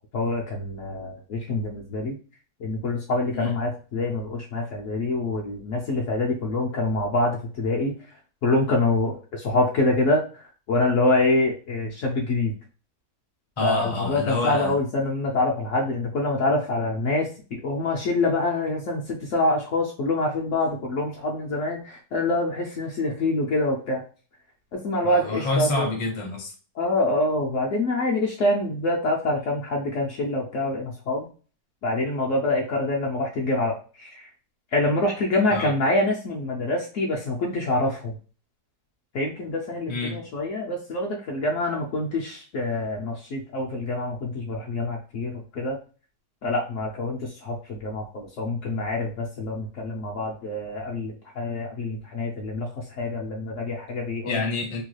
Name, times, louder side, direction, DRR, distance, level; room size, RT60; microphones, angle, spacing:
voice 1, 0.1-2.2 2.6-7.9 8.4-10.4 10.7-12.5 13.6-24.0 24.7-25.9 26.8-31.3 31.8-34.3 34.7-38.1 39.1-45.8 46.4-54.4, left 2 dB, 65° left, -1 dB, 0.8 m, -26 dB
voice 2, 13.6-14.8 25.0-26.5 35.5-35.7 39.9-40.2 54.2-54.8, left 2 dB, 30° left, 0 dB, 0.6 m, -27 dB
3.0 x 2.3 x 3.1 m, 0.37 s
omnidirectional pair, 1.7 m